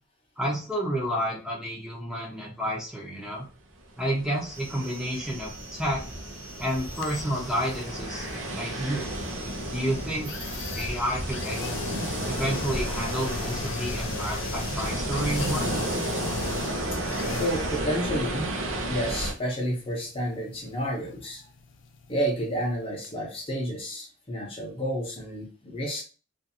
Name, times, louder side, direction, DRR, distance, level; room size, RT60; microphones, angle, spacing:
voice 1, 0.4-3.4 4.0-6.0 6.6-8.3 8.6-9.1 9.7-10.3 10.7-11.6 12.3-16.0, equal, 5° right, -4 dB, 0.6 m, -30 dB
sound 1, 4.0-19.3, right 1 dB, 90° right, 0.6 m, -32 dB
sound 2, 4.5-17.8, right 2 dB, 55° right, 1.2 m, -45 dB
sound 3, 6.9-22.8 23.0-23.1, left 6 dB, 70° left, 0.4 m, -39 dB
voice 2, 17.4-18.5 18.9-21.4 22.1-26.0, equal, 30° left, -1 dB, 0.8 m, -30 dB
2.5 x 2.5 x 2.7 m, 0.37 s
head